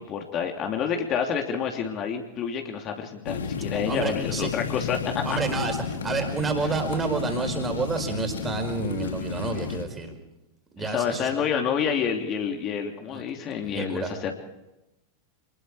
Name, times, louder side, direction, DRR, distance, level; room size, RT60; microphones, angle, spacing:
voice 1, 0.0-5.4 10.8-14.3, left 7 dB, 35° left, 3 dB, 3.0 m, -28 dB
sound 1, 3.3-9.9, left 6 dB, 65° left, 1.9 m, -32 dB
voice 2, 3.9-4.5 5.2-10.2 10.7-11.3 13.1-13.2 13.6-14.1, right 4 dB, 15° right, 5 dB, 5.0 m, -29 dB
27.5 x 21.0 x 4.9 m, 0.94 s
figure-of-eight pair, 90°, 0 cm